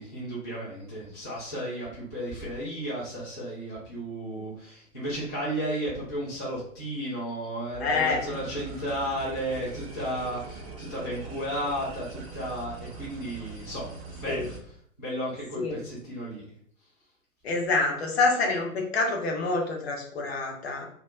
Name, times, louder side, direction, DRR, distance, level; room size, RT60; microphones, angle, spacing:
voice 1, 0.0-16.4, right 1 dB, 15° left, -10 dB, 0.4 m, -34 dB
sound 1, 7.7-14.6, right 4 dB, 25° right, 0.6 m, -42 dB
voice 2, 7.8-8.4 14.3-14.4 15.6-15.8 17.4-20.9, left 3 dB, 50° left, 1 dB, 0.8 m, -27 dB
2.3 x 2.1 x 3.1 m, 0.62 s
figure-of-eight pair, 115°, 42 cm